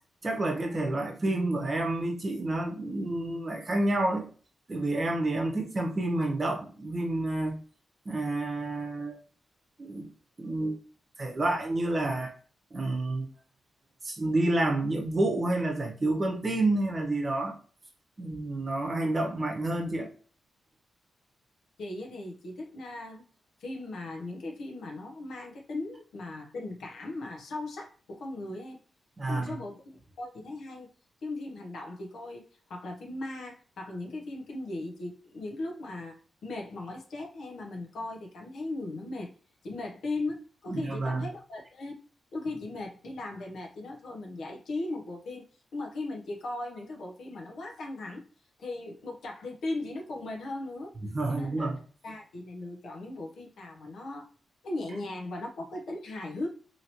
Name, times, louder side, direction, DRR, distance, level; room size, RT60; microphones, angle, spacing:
voice 1, 0.2-4.3 4.7-7.6 8.0-9.2 9.8-10.1 10.4-10.8 11.2-12.3 12.7-13.3 14.0-17.5 18.2-20.1 29.2-29.5 40.7-41.3 51.0-51.8, right 2 dB, 40° right, 0.8 m, -29 dB
voice 2, 21.8-23.3 23.6-28.8 29.3-30.9 31.2-32.4 32.7-39.3 39.6-42.0 42.3-45.5 45.7-48.2 48.6-50.9 51.3-51.7 52.0-54.3 54.6-56.5, left 2 dB, 80° left, 0.7 m, -38 dB
2.9 x 2.8 x 2.8 m
cardioid pair, 60°, 0 cm